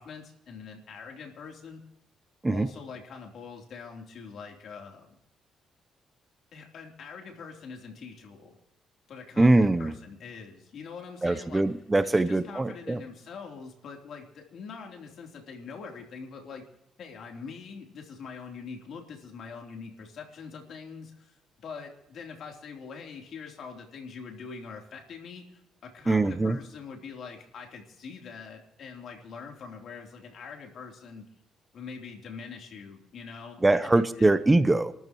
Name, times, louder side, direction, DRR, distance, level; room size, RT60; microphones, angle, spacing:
voice 1, 0.0-1.8 2.5-5.2 6.5-8.6 9.1-11.6 12.0-16.6 17.0-31.2 31.7-33.9 34.2-34.3, left 5 dB, 65° left, 1 dB, 3.5 m, -43 dB
voice 2, 9.4-9.9 11.2-13.0 26.1-26.6 33.6-34.9, right 2 dB, 15° right, 13 dB, 0.7 m, -22 dB
28.0 x 13.5 x 3.1 m, 0.82 s
cardioid pair, 90°, 0 cm